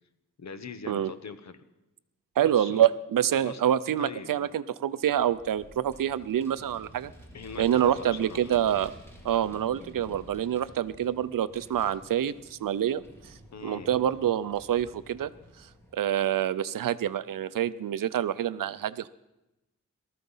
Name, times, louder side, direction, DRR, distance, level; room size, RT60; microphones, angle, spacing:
voice 1, 0.4-1.6 2.4-2.9 3.4-3.6 4.0-4.5 7.3-8.5 10.0-10.2 13.5-13.9, left 5 dB, 60° left, 10 dB, 1.0 m, -42 dB
voice 2, 2.4-7.1 7.6-8.9 9.2-13.0 13.6-15.3 15.9-19.1, right 10 dB, 85° right, 16 dB, 0.6 m, -26 dB
Vehicle, 5.1-16.0, equal, 10° left, 3.0 m, -51 dB
19.0 x 13.5 x 5.6 m, 0.97 s
wide cardioid pair, 175°, 32 cm